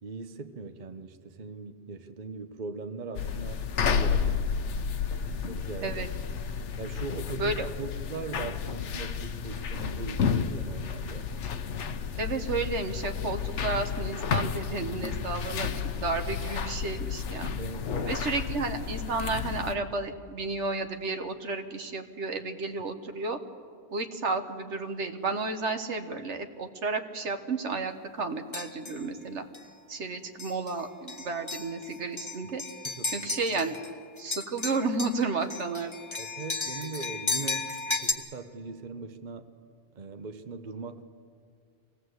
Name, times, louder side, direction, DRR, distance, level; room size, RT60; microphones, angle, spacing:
voice 1, 0.0-4.5 5.5-6.1 6.8-11.3 17.6-18.1 32.8-33.4 36.2-39.5 40.0-41.0, right 4 dB, 45° right, 8 dB, 1.0 m, -40 dB
sound 1, 3.1-19.7, left 6 dB, 75° left, 1.1 m, -31 dB
voice 2, 12.2-17.5 18.0-23.4 23.9-29.4 29.9-32.6 33.1-33.7 34.2-35.9, right 3 dB, 75° right, 7 dB, 1.5 m, -32 dB
sound 2, 28.5-29.0 29.5-29.7 30.4-30.7 31.1-33.9 34.2-38.1, left 3 dB, 25° left, 1.1 m, -34 dB
24.5 x 18.0 x 7.9 m, 2.2 s
omnidirectional pair, 1.2 m